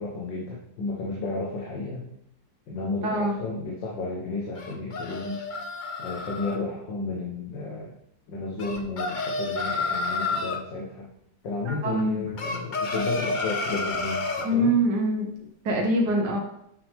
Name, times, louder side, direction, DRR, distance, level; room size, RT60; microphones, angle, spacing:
voice 1, 0.0-2.0 2.7-5.4 6.0-7.9 8.3-11.1 11.4-14.7, left 3 dB, 85° left, -2 dB, 1.9 m, -32 dB
voice 2, 3.0-3.3 11.6-12.2 14.4-15.3 15.6-16.4, right 1 dB, 65° right, 0 dB, 1.7 m, -24 dB
sound 1, 4.6-6.6 8.6-10.6 12.4-14.5, left 3 dB, 55° left, 0.5 m, -30 dB
7.9 x 6.2 x 3.6 m, 0.76 s
omnidirectional pair, 1.9 m